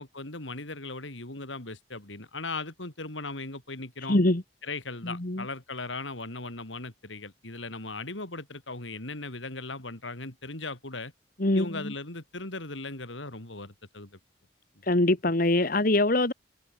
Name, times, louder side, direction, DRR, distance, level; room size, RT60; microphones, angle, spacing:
voice 1, 0.0-4.2 4.6-11.1 11.5-14.2, left 3 dB, 85° left, 4.4 m, -38 dB
voice 2, 4.1-4.4 5.0-5.4 11.4-11.8 14.9-16.3, left 1 dB, 50° left, 1.8 m, -23 dB
head